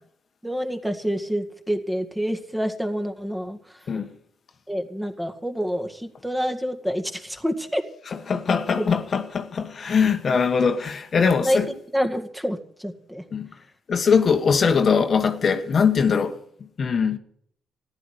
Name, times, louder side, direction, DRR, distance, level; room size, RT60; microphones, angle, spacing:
voice 1, 0.4-3.6 4.7-7.8 8.8-8.9 10.3-10.4 11.5-11.6 11.9-13.2, equal, 5° right, 2.0 m, -27 dB
voice 2, 8.1-11.7 13.3-13.5 13.9-16.4 16.8-17.2, left 6 dB, 45° left, 1.4 m, -21 dB
14.5 x 10.5 x 8.0 m
cardioid pair, 90°, 0 cm